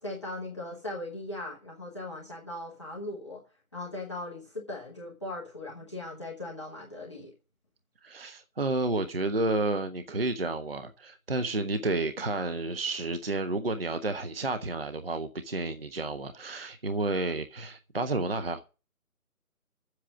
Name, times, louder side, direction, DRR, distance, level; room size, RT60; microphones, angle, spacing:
voice 1, 0.0-3.4 3.7-7.3, left 2 dB, 20° left, 1.1 m, -39 dB
voice 2, 8.0-18.6, right 2 dB, 40° right, 0.6 m, -31 dB
8.1 x 7.7 x 6.1 m
figure-of-eight pair, 170°, 44 cm